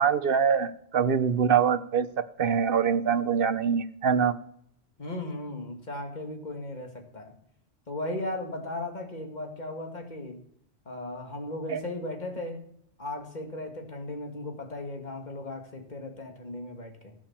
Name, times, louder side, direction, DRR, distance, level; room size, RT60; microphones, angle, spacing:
voice 1, 0.0-2.1 2.4-4.4 11.7-11.8, right 7 dB, 55° right, 13 dB, 1.0 m, -24 dB
voice 2, 5.0-7.3 7.9-10.4 10.9-12.6 13.0-17.1, left 1 dB, 40° left, 3 dB, 2.5 m, -36 dB
15.5 x 9.1 x 7.4 m, 0.69 s
omnidirectional pair, 1.2 m